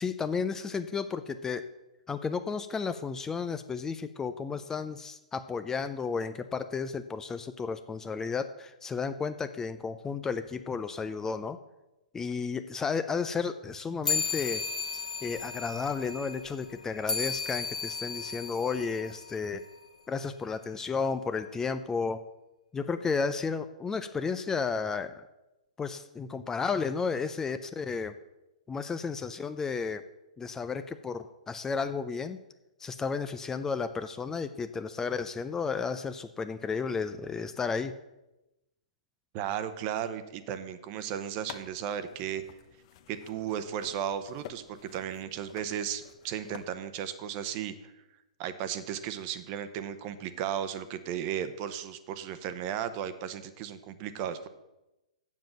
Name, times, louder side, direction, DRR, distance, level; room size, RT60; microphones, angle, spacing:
voice 1, 0.0-1.7 2.1-11.6 12.1-14.6 14.9-19.6 20.1-22.2 22.7-25.2 25.8-28.1 28.7-30.0 30.4-32.4 32.8-37.9, left 5 dB, 10° left, 11 dB, 0.4 m, -33 dB
sound 1, 14.0-19.9, left 5 dB, 80° left, 1.1 m, -35 dB
voice 2, 39.3-42.4 43.1-47.9 48.4-54.5, right 9 dB, 35° right, 12 dB, 0.9 m, -35 dB
sound 2, 41.3-46.6, left 11 dB, 45° left, 0.9 m, -50 dB
7.4 x 7.4 x 7.7 m, 0.97 s
hypercardioid pair, 120°, 4 cm